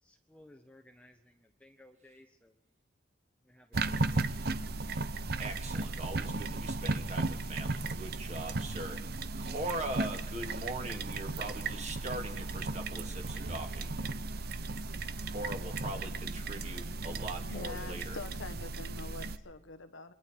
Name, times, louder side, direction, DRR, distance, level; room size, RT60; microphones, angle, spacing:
voice 1, 0.0-2.6 3.4-4.3, left 1 dB, 5° left, 4 dB, 1.0 m, -59 dB
sound 1, 3.7-19.4, right 3 dB, 50° right, 0.8 m, -35 dB
voice 2, 5.4-9.0 9.4-13.9 15.3-18.2, right 1 dB, 35° right, 4 dB, 2.4 m, -41 dB
voice 3, 17.5-20.1, left 3 dB, 75° left, 11 dB, 1.2 m, -44 dB
27.5 x 23.0 x 4.6 m, 0.81 s
head